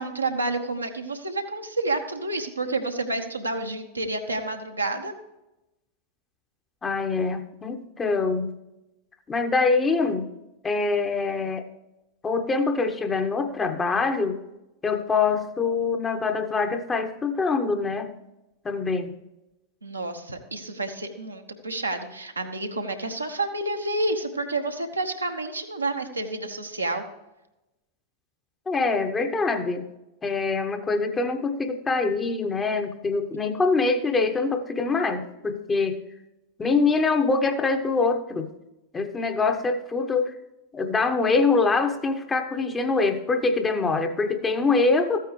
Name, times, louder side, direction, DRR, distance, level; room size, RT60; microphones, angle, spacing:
voice 1, 0.0-5.1 19.8-27.0, right 2 dB, 80° right, 3 dB, 1.1 m, -29 dB
voice 2, 6.8-8.5 9.3-10.3 10.6-11.7 12.2-14.4 14.8-18.1 18.6-19.1 28.7-29.9 30.2-36.0 36.6-38.5 38.9-40.3 40.7-45.2, left 4 dB, 15° left, 7 dB, 0.9 m, -24 dB
14.0 x 9.3 x 3.2 m, 0.95 s
figure-of-eight pair, 90°, 0 cm